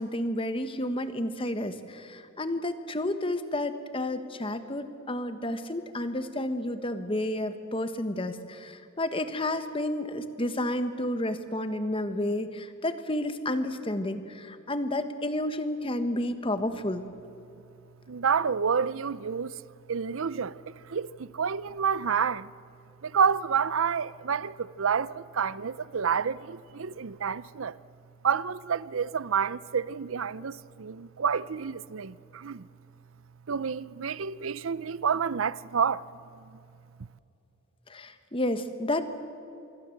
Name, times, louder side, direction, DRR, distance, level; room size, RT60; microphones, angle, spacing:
voice 1, 0.0-17.0 37.9-39.2, left 1 dB, 25° left, 1.3 m, -31 dB
voice 2, 18.1-19.6 19.9-22.5 23.0-27.8 28.2-32.7 33.5-36.1 36.4-36.5, right 6 dB, 75° right, 0.6 m, -29 dB
26.0 x 23.0 x 7.9 m
head